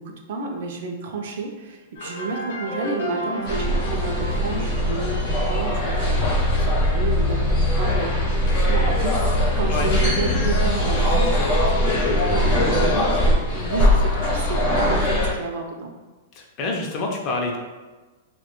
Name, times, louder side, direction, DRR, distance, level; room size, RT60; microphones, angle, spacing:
voice 1, 0.0-8.2 8.5-15.9, right 3 dB, 60° right, 2 dB, 0.4 m, -31 dB
sound 1, 2.0-6.6, equal, 85° left, 0.6 m, -33 dB
sound 2, 3.4-15.3, left 1 dB, 45° left, 0.8 m, -21 dB
voice 2, 16.3-17.6, left 2 dB, 30° left, 0 dB, 0.4 m, -27 dB
2.3 x 2.1 x 2.8 m, 1.2 s
supercardioid pair, 160°, 0 cm